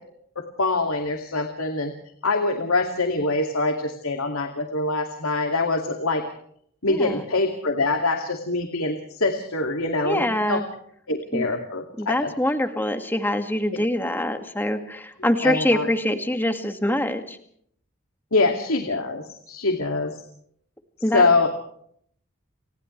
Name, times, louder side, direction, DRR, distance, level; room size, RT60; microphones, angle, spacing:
voice 1, 0.4-1.9 2.2-6.2 6.8-10.6 11.1-12.2 13.7-13.8 15.4-15.8 18.3-20.2 21.1-21.5, left 3 dB, 85° left, 4 dB, 2.5 m, -24 dB
voice 2, 6.9-7.3 10.0-10.6 11.3-11.5 12.0-17.4 21.0-21.5, left 1 dB, 10° left, 6 dB, 2.0 m, -24 dB
30.0 x 26.0 x 3.3 m, 0.66 s
head